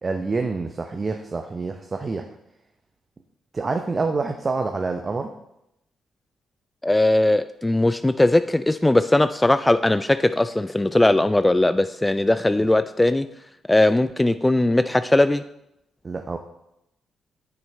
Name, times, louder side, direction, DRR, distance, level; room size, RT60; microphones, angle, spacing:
voice 1, 0.0-2.2 3.5-5.3 12.5-12.7 16.0-16.4, right 3 dB, 40° right, 5 dB, 0.7 m, -27 dB
voice 2, 6.8-13.3 13.7-15.4, left 1 dB, 15° left, 12 dB, 0.3 m, -19 dB
8.8 x 6.2 x 3.2 m, 0.82 s
hypercardioid pair, 40°, 0 cm